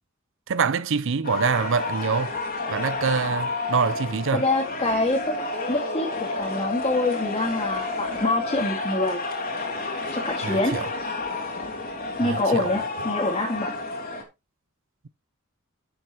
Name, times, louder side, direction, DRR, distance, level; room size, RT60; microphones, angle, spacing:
voice 1, 0.5-2.3 2.7-4.4 10.4-10.9 12.2-12.8, right 5 dB, 65° right, 0.6 m, -25 dB
sound 1, 1.2-14.2, left 3 dB, 45° left, 2.7 m, -30 dB
voice 2, 4.3-6.1 6.4-9.2 10.1-10.8 12.2-13.7, left 2 dB, 25° left, 1.9 m, -25 dB
11.0 x 7.8 x 3.0 m
head